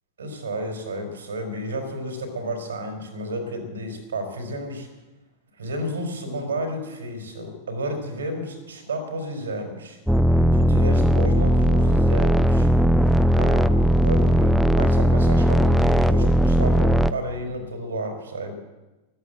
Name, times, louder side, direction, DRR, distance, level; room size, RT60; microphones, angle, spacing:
voice 1, 0.2-4.9 5.6-10.0 10.5-12.7 13.4-18.5, right 1 dB, 70° right, 5 dB, 4.0 m, -31 dB
sound 1, 10.1-17.1, equal, ahead, 0.5 m, -18 dB
14.5 x 12.5 x 7.7 m, 1.1 s
figure-of-eight pair, 90°, 0 cm